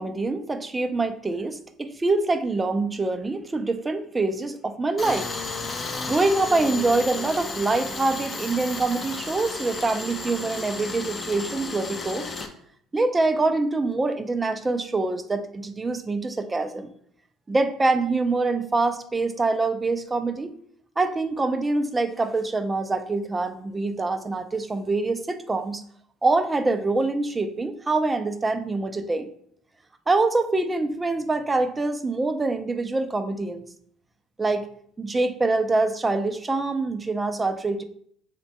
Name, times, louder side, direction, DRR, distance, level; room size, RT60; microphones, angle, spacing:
voice 1, 0.0-5.3 6.1-12.3 12.9-16.9 17.5-20.5 21.0-25.8 26.2-29.3 30.1-33.6 34.4-34.7 35.0-37.8, right 3 dB, 20° right, 9 dB, 0.4 m, -25 dB
Tools, 5.0-12.5, left 3 dB, 30° left, 0.5 m, -33 dB
3.2 x 2.2 x 4.1 m, 0.64 s
hypercardioid pair, 70°, 0 cm